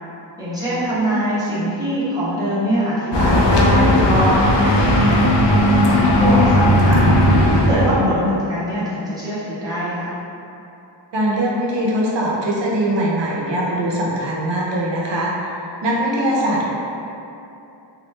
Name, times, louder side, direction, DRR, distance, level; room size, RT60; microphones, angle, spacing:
voice 1, 0.4-5.2 5.6-10.1, equal, 10° right, -12 dB, 1.0 m, -23 dB
sound 1, 3.1-8.1, left 1 dB, 70° left, 0.5 m, -15 dB
voice 2, 7.8-8.2 11.1-16.7, right 1 dB, 70° right, -4 dB, 0.7 m, -22 dB
3.1 x 2.3 x 3.2 m, 2.8 s
wide cardioid pair, 135°, 45 cm